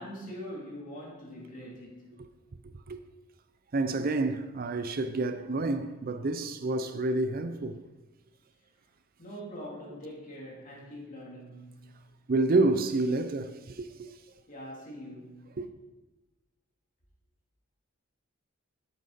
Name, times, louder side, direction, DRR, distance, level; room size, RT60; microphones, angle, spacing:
voice 1, 0.0-2.2 9.2-12.0 14.5-15.5, equal, 40° left, 3.0 m, -43 dB
voice 2, 3.7-7.8 12.3-14.2 15.6-15.7, right 2 dB, 45° right, 0.5 m, -29 dB
11.5 x 8.2 x 4.1 m
head